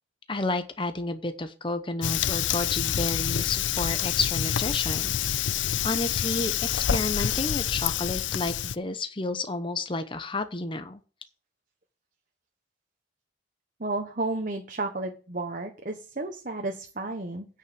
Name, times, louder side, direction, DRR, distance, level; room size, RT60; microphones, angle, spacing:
voice 1, 0.3-11.0, left 2 dB, 25° left, 9 dB, 0.9 m, -31 dB
Fire, 2.0-8.8, left 10 dB, 80° left, 0.5 m, -27 dB
voice 2, 13.8-17.5, right 2 dB, 45° right, 3 dB, 1.3 m, -32 dB
9.7 x 5.8 x 7.5 m, 0.36 s
head